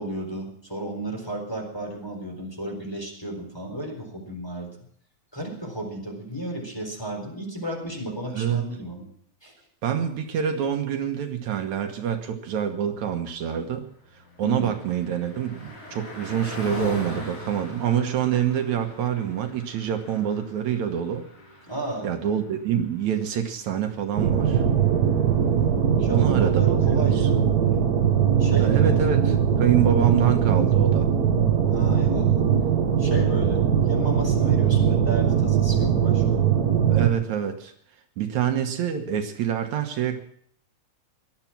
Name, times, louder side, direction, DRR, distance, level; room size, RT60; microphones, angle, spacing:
voice 1, 0.0-4.7 5.3-9.1 9.4-9.5 14.4-14.7 21.7-22.1 26.0-27.5 28.4-29.0 31.7-32.4 33.0-36.4, right 1 dB, 10° left, 0 dB, 3.9 m, -33 dB
voice 2, 8.3-8.7 9.8-13.9 14.4-21.3 22.0-24.6 26.1-27.3 28.6-31.1 36.9-37.7 38.2-40.2, right 8 dB, 75° right, 5 dB, 2.6 m, -26 dB
Car passing by, 13.8-25.4, left 1 dB, 85° left, 8.0 m, -41 dB
sound 1, 24.2-37.1, right 8 dB, 50° right, 1.2 m, -21 dB
18.0 x 12.5 x 6.0 m, 0.63 s
omnidirectional pair, 3.4 m